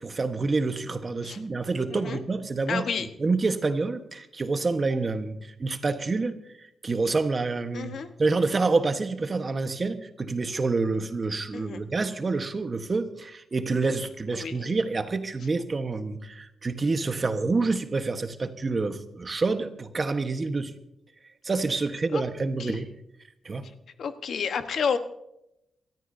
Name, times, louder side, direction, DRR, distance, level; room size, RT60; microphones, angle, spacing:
voice 1, 0.0-6.4 6.8-20.7 21.4-22.9 23.4-23.7, right 3 dB, 35° right, 8 dB, 1.2 m, -27 dB
voice 2, 1.9-2.2 2.7-3.1 7.7-8.1 11.5-11.8 14.3-14.7 22.1-22.2 22.6-22.8 24.0-25.0, left 6 dB, 70° left, 9 dB, 1.1 m, -30 dB
27.5 x 13.5 x 2.7 m, 0.81 s
cardioid pair, 115°, 0 cm